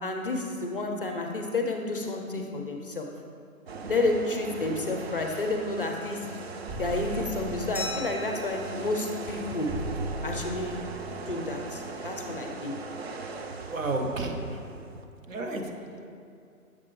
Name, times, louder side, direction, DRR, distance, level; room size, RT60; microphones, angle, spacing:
voice 1, 0.0-3.1 3.9-6.2 6.8-9.7 10.2-10.8 11.3-12.7, left 2 dB, 40° left, 3 dB, 0.5 m, -30 dB
sound 1, 3.7-15.0, right 4 dB, 50° right, 0.4 m, -39 dB
sound 2, 6.7-8.1 9.7-11.1, right 1 dB, 20° right, 0.9 m, -37 dB
Glass, 7.7-10.2, left 2 dB, ahead, 0.6 m, -41 dB
voice 2, 13.6-14.9 15.3-15.7, right 2 dB, 65° right, 3 dB, 0.9 m, -32 dB
7.5 x 5.9 x 3.1 m, 2.4 s
figure-of-eight pair, 140°, 44 cm